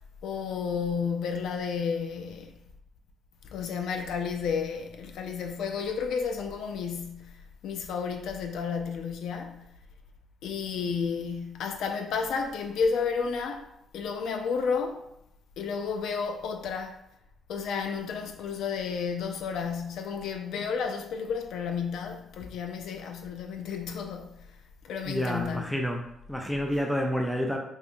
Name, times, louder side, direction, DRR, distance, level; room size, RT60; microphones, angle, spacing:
voice 1, 0.2-2.6 3.4-9.6 10.4-15.0 15.6-17.0 17.5-24.5 24.8-25.7, left 5 dB, 80° left, 0.4 m, -32 dB
voice 2, 25.1-27.6, equal, ahead, 0.4 m, -29 dB
5.2 x 2.2 x 2.5 m
cardioid pair, 90°, 0 cm